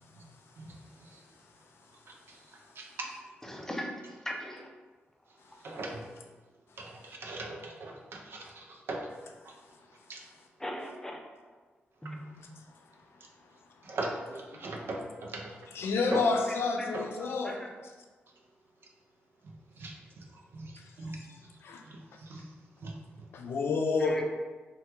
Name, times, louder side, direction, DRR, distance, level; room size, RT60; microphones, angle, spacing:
voice 1, 2.8-3.1 5.6-6.0 6.8-9.1 10.1-10.2 13.8-15.5 16.1-16.2 16.9-17.0 19.8-20.3 20.5-20.7 21.0-21.2 21.9-22.5 22.8-23.0, right 2 dB, 70° right, 1 dB, 0.5 m, -39 dB
voice 2, 3.4-4.7 10.6-11.2 12.0-12.2 16.5-16.9 17.2-17.6 24.0-24.2, equal, 10° left, 1 dB, 0.5 m, -39 dB
voice 3, 15.7-17.6 21.6-21.8 23.3-24.2, left 4 dB, 75° left, 3 dB, 0.4 m, -29 dB
2.8 x 2.2 x 3.4 m, 1.3 s
cardioid pair, 85°, 4 cm